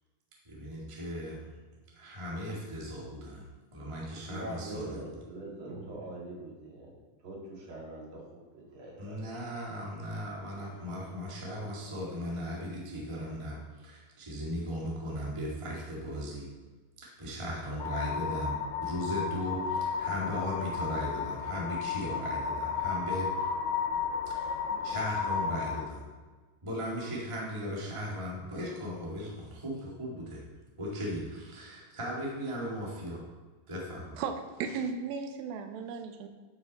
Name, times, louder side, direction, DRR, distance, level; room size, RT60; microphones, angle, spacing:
voice 1, 0.4-1.5 1.9-3.4 3.7-5.0 9.0-16.5 17.0-23.3 24.3-24.6 24.8-26.0 26.6-30.4 30.8-33.2 33.7-34.2, equal, 20° right, -4 dB, 0.9 m, -37 dB
voice 2, 4.2-7.0 7.2-9.4, right 2 dB, 40° right, -3 dB, 2.2 m, -43 dB
sound 1, 17.8-25.9, left 6 dB, 80° left, 2.1 m, -33 dB
voice 3, 34.2-36.3, right 5 dB, 80° right, 6 dB, 2.5 m, -35 dB
11.0 x 5.8 x 4.1 m, 1.4 s
omnidirectional pair, 4.3 m